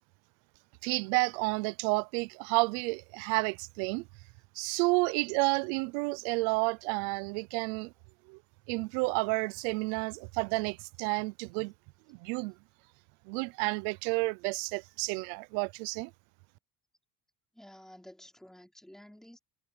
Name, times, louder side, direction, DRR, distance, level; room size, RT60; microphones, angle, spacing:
voice 1, 0.8-4.0 4.6-7.9 8.3-8.4 8.7-11.7 12.1-12.5 13.3-16.1, right 27 dB, 75° right, 0.7 m, -30 dB
voice 2, 17.5-19.4, equal, ahead, 3.1 m, -52 dB
cardioid pair, 170°, 39 cm